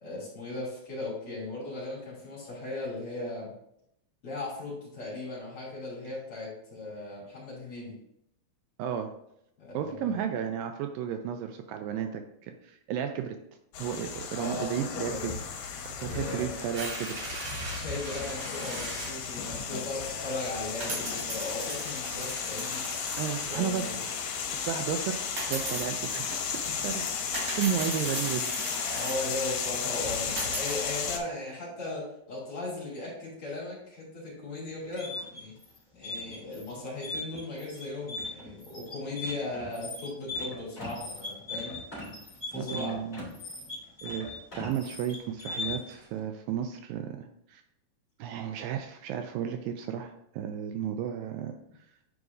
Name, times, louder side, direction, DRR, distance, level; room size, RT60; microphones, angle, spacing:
voice 1, 0.0-3.5 4.2-8.0 9.6-10.1 14.4-14.7 15.1-15.3 15.9-16.5 17.7-23.1 23.4-24.0 28.8-35.5 35.9-41.8 42.5-43.0, left 2 dB, 40° left, -7 dB, 3.1 m, -37 dB
voice 2, 8.8-9.1 9.7-13.4 13.8-15.4 16.0-17.2 23.2-24.0 24.5-26.6 26.8-27.3 27.6-28.5 42.5-43.3 44.0-44.3 44.6-47.6 48.2-51.6, right 9 dB, 80° right, 6 dB, 2.2 m, -33 dB
sound 1, 13.7-31.2, left 6 dB, 75° left, 2.5 m, -34 dB
sound 2, 16.7-19.1 20.2-20.3 20.8-23.6 25.4-25.9 27.3-29.2 30.4-30.8, right 2 dB, 50° right, 3.1 m, -38 dB
sound 3, 34.8-46.0, left 2 dB, 15° left, 2.2 m, -39 dB
9.6 x 4.8 x 2.6 m, 0.76 s
omnidirectional pair, 4.2 m